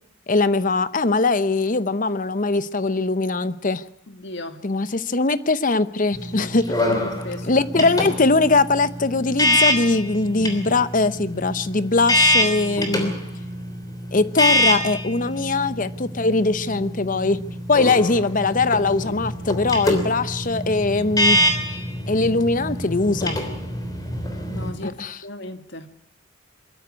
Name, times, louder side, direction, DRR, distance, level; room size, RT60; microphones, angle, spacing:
voice 1, 0.3-3.8 4.6-6.7 7.4-13.1 14.1-17.4 17.7-21.4 22.1-23.4 24.8-25.2, left 3 dB, 40° left, 14 dB, 0.8 m, -21 dB
voice 2, 4.1-4.6 6.4-6.8 7.0-7.5 24.5-25.0 25.2-25.9, left 2 dB, 55° left, 8 dB, 1.8 m, -36 dB
sound 1, 6.1-24.7, left 1 dB, 15° left, 3.3 m, -25 dB
23.0 x 13.5 x 9.7 m, 0.71 s
head